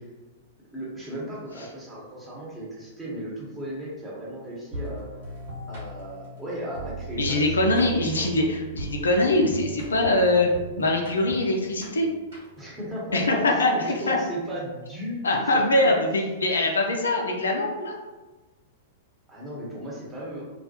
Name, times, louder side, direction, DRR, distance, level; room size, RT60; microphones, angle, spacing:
voice 1, 0.7-5.1 5.7-8.5 12.6-15.9 19.3-20.4, equal, 15° right, -6 dB, 0.9 m, -36 dB
sound 1, 4.7-12.8, right 4 dB, 60° right, 1.2 m, -38 dB
voice 2, 7.2-10.5 10.8-12.1 13.1-14.2 15.2-17.9, left 2 dB, 75° left, 1 dB, 0.4 m, -23 dB
2.3 x 2.1 x 2.7 m, 1.2 s
figure-of-eight pair, 100°, 0 cm